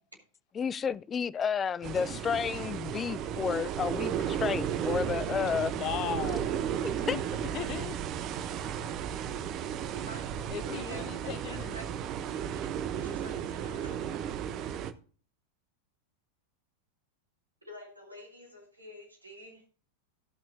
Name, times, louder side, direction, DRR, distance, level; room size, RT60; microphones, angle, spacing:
voice 1, 0.6-5.7 7.1-7.2, left 6 dB, 20° left, 0.4 m, -31 dB
sound 1, 1.8-14.9, right 9 dB, 35° right, 0.9 m, -34 dB
voice 2, 5.6-8.0 10.5-11.8, left 11 dB, 40° left, 0.9 m, -38 dB
voice 3, 9.9-14.2 17.6-19.6, equal, 80° right, 3.0 m, -49 dB
17.0 x 6.0 x 2.8 m
figure-of-eight pair, 90°, 0 cm